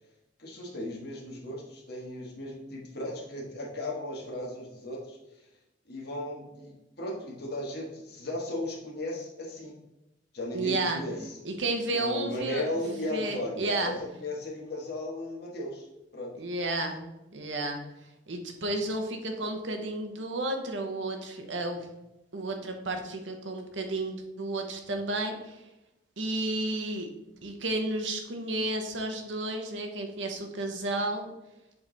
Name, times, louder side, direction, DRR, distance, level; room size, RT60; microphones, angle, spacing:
voice 1, 0.4-5.2 5.9-6.7 7.0-9.8 10.3-11.4 11.9-15.9 16.1-16.3, left 1 dB, 60° left, -3 dB, 1.6 m, -36 dB
voice 2, 10.5-11.0 11.4-12.8 13.1-13.9 16.4-17.0 17.3-17.8 18.3-21.8 22.3-25.6 26.2-27.1 27.4-31.3, right 2 dB, 90° right, 4 dB, 1.0 m, -32 dB
6.8 x 3.5 x 4.0 m, 0.94 s
head